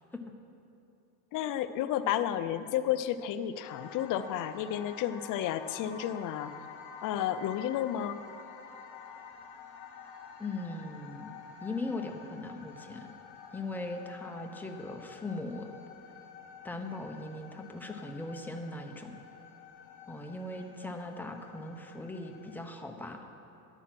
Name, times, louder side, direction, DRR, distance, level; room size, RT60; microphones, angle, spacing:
voice 1, 1.3-6.5 7.0-8.2, left 11 dB, 45° left, 11 dB, 0.6 m, -32 dB
sound 1, 3.7-22.7, left 6 dB, 75° left, 1.4 m, -49 dB
voice 2, 10.4-11.4 11.6-13.1 13.5-15.7 16.6-19.2 20.1-23.3, left 2 dB, 5° left, 3 dB, 0.7 m, -39 dB
11.5 x 9.1 x 5.9 m, 2.8 s
cardioid pair, 135°, 44 cm